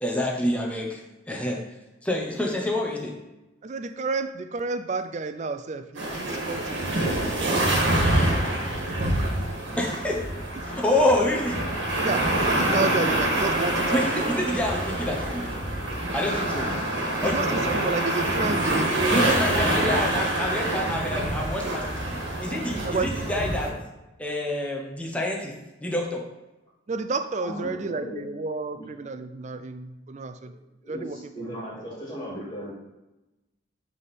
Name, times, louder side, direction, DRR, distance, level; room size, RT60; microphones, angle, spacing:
voice 1, 0.0-1.7 2.0-3.2 9.8-10.4 10.6-11.7 13.9-15.5 16.1-16.8 17.2-17.7 19.1-23.8 24.2-26.3, left 1 dB, 5° left, 0 dB, 0.9 m, -27 dB
voice 2, 3.6-8.2 8.7-9.3 12.0-14.4 17.2-19.9 22.8-23.1 26.9-30.5 30.9-31.2 31.5-31.6, right 3 dB, 35° right, 9 dB, 0.4 m, -31 dB
sound 1, 5.9-23.7, right 1 dB, 70° right, 1.7 m, -26 dB
voice 3, 27.4-28.4 28.7-28.9 30.4-30.6 30.8-32.7, equal, 25° left, -5 dB, 2.3 m, -37 dB
8.2 x 3.6 x 4.1 m, 1.0 s
head